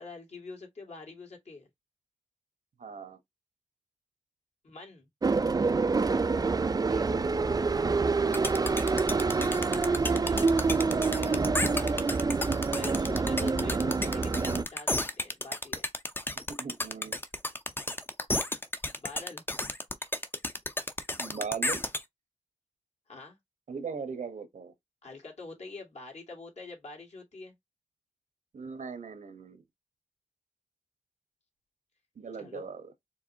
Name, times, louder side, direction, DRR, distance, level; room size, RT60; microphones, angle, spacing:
voice 1, 0.0-1.7 4.6-5.1 9.4-10.4 10.8-11.4 11.7-12.3 12.7-15.9 18.9-19.4 23.1-23.4 25.0-27.5 32.4-32.7, left 3 dB, 60° left, 2.1 m, -45 dB
voice 2, 2.8-3.2 6.7-7.4 16.5-17.2 21.2-21.8 23.7-24.7 28.5-29.6 32.1-32.9, right 5 dB, 75° right, 1.0 m, -39 dB
sound 1, 5.2-14.6, right 4 dB, 30° right, 0.4 m, -27 dB
sound 2, 8.3-22.0, left 1 dB, 15° left, 0.6 m, -32 dB
4.8 x 3.1 x 2.7 m
wide cardioid pair, 80°, 13 cm